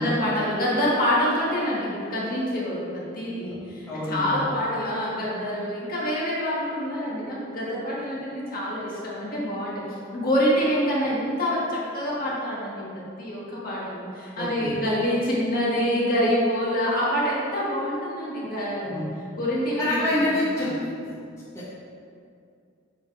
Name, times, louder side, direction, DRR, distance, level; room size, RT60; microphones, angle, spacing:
voice 1, 0.0-9.7 10.1-19.0 19.4-20.3 20.6-20.7, equal, 45° left, -6 dB, 1.5 m, -26 dB
voice 2, 3.9-4.4 14.4-14.7 18.9-19.1 19.8-20.7 21.0-21.1 21.5-21.7, left 1 dB, 15° left, -11 dB, 1.2 m, -27 dB
7.5 x 3.9 x 4.7 m, 2.4 s
head